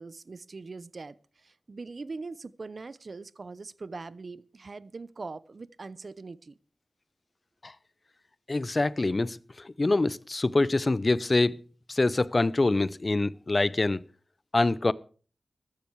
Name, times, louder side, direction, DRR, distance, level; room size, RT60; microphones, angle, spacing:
voice 1, 0.0-6.6, right 3 dB, 60° right, 0.7 m, -42 dB
voice 2, 8.5-11.6 11.9-14.0 14.5-14.9, left 2 dB, 40° left, 0.6 m, -25 dB
14.5 x 12.0 x 4.7 m
wide cardioid pair, 65°, 0 cm